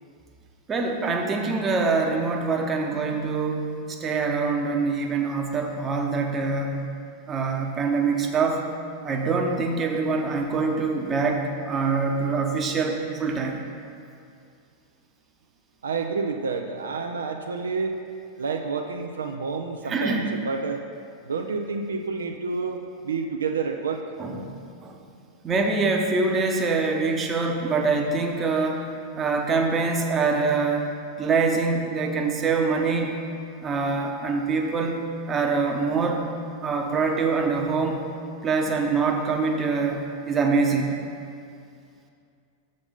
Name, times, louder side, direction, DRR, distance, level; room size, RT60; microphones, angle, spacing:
voice 1, 0.7-6.8 7.3-8.6 9.0-13.6 19.8-20.3 24.2-24.5 24.8-25.0 25.4-28.8 29.2-30.9 31.2-33.1 33.6-35.0 35.3-36.3 36.6-38.0 38.4-41.0, right 4 dB, 25° right, 2 dB, 0.8 m, -24 dB
voice 2, 15.8-18.0 18.4-20.8 21.2-24.0, right 4 dB, 70° right, 4 dB, 0.4 m, -29 dB
6.9 x 5.2 x 5.6 m, 2.4 s
figure-of-eight pair, 90°, 0 cm